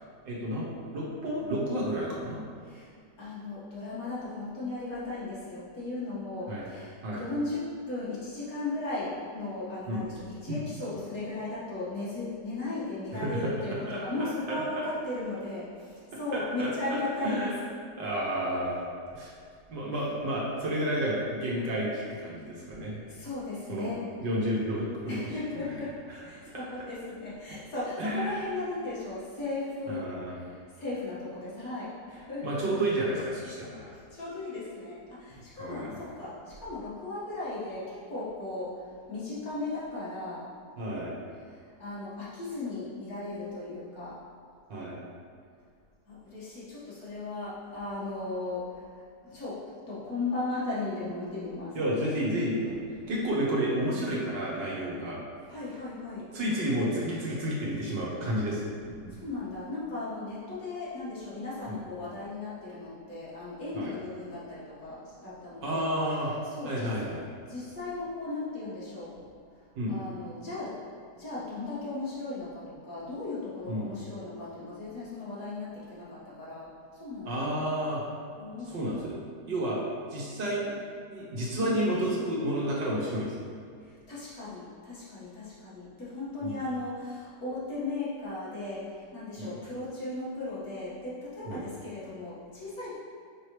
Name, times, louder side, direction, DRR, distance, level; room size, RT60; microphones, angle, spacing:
voice 1, 0.2-2.4 6.5-6.6 7.0-7.2 9.9-10.0 10.5-10.6 13.1-13.5 13.9-14.6 16.3-17.5 18.0-18.8 19.1-19.3 19.7-23.0 23.7-23.9 24.2-25.8 26.1-26.2 28.0-28.3 29.9-30.4 32.4-33.9 35.6-36.0 40.8-41.2 44.7-45.0 51.7-52.7 53.1-55.2 56.3-58.7 61.7-61.8 63.7-63.9 65.6-66.3 66.6-67.3 69.8-69.9 73.7-73.9 77.3-78.0 78.7-79.2 79.5-79.8 80.1-80.7 81.1-83.4 86.4-86.6 89.4-89.5 91.5-91.6, right 1 dB, 80° right, -5 dB, 1.9 m, -31 dB
voice 2, 3.2-17.5 23.1-24.1 25.1-32.6 33.9-40.5 41.5-44.2 46.1-49.0 49.3-51.8 52.7-52.8 55.5-56.3 58.8-65.9 66.4-67.0 67.5-69.2 69.9-70.9 71.1-77.5 78.4-78.8 81.6-81.9 83.8-92.9, left 2 dB, 55° left, -10 dB, 2.1 m, -36 dB
6.1 x 5.1 x 3.2 m, 2.2 s
omnidirectional pair, 1.9 m